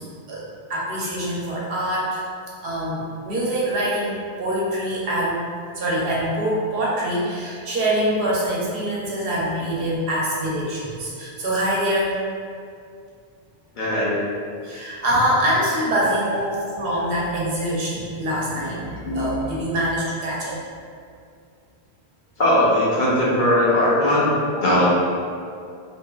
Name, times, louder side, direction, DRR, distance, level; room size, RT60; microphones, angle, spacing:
voice 1, 0.7-2.2 2.6-5.4 5.7-12.1 14.6-20.5, right 1 dB, 70° right, -6 dB, 0.8 m, -24 dB
voice 2, 13.8-14.2 18.5-18.6 19.0-19.3 22.4-24.3 24.6-25.0, left 1 dB, 55° left, -9 dB, 0.8 m, -19 dB
2.6 x 2.2 x 2.3 m, 2.3 s
omnidirectional pair, 1.0 m